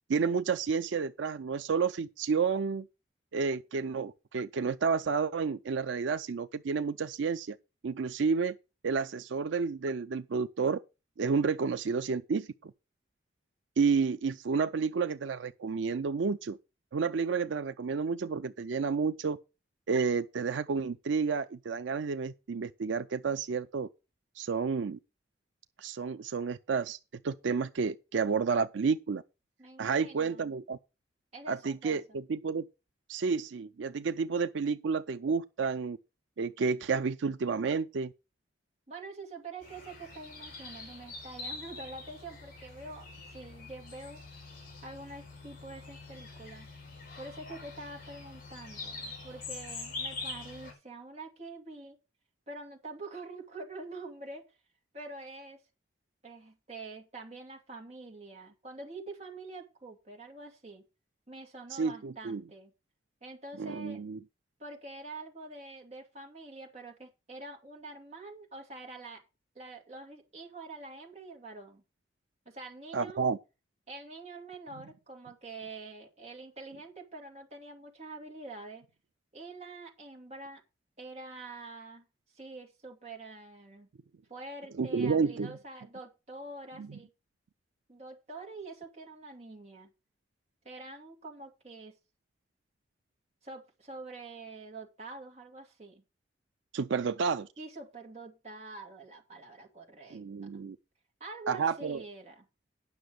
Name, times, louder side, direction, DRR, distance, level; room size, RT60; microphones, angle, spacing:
voice 1, 0.1-2.9 3.3-7.6 7.8-8.5 8.8-10.8 11.2-12.7 13.8-16.6 16.9-19.4 19.9-23.9 24.4-25.0 25.8-27.0 27.2-29.2 29.8-30.8 31.5-32.7 33.1-36.0 36.4-38.1 61.7-62.4 63.6-64.2 72.9-73.4 84.8-85.5 86.8-86.9 96.7-97.5 100.1-100.8 101.5-102.0, right 5 dB, 90° right, 0.5 m, -30 dB
voice 2, 29.6-30.5 31.3-32.2 38.9-44.2 44.8-46.7 47.2-52.0 52.5-54.6 54.9-55.6 56.2-60.8 61.3-62.7 63.2-64.0 64.6-69.2 69.5-71.8 72.5-73.2 73.9-78.8 79.3-80.6 81.0-82.1 82.3-83.9 84.3-87.1 87.9-89.9 90.6-92.0 93.4-96.0 97.6-100.2 101.2-102.5, right 2 dB, 35° right, 2.4 m, -46 dB
sound 1, 39.6-50.7, left 3 dB, 50° left, 4.6 m, -44 dB
9.6 x 6.1 x 6.5 m
head